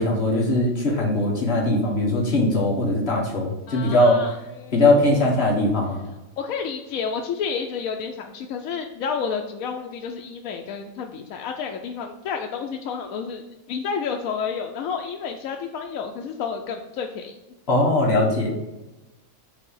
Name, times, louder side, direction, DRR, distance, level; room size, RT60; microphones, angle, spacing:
voice 1, 0.0-4.2 4.7-6.0 17.7-18.5, left 1 dB, 50° left, -2 dB, 1.6 m, -20 dB
voice 2, 3.7-4.8 6.4-17.4, left 6 dB, 85° left, 3 dB, 1.0 m, -30 dB
5.4 x 4.1 x 5.4 m, 1.0 s
omnidirectional pair, 1.4 m